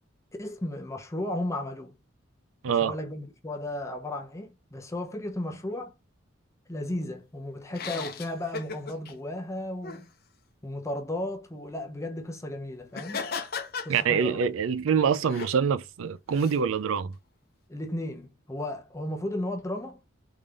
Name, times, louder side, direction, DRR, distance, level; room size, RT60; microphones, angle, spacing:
voice 1, 0.4-1.9 2.7-5.9 6.7-10.1 10.6-13.3 13.8-14.5 17.7-20.0, left 1 dB, 15° left, 0.6 m, -34 dB
voice 2, 2.6-2.9 13.9-17.1, right 6 dB, 80° right, 0.4 m, -25 dB
sound 1, 7.7-9.1 9.8-10.0 12.9-14.4 14.9-15.6 16.3-16.6, left 5 dB, 50° left, 0.7 m, -36 dB
3.5 x 3.3 x 2.4 m
head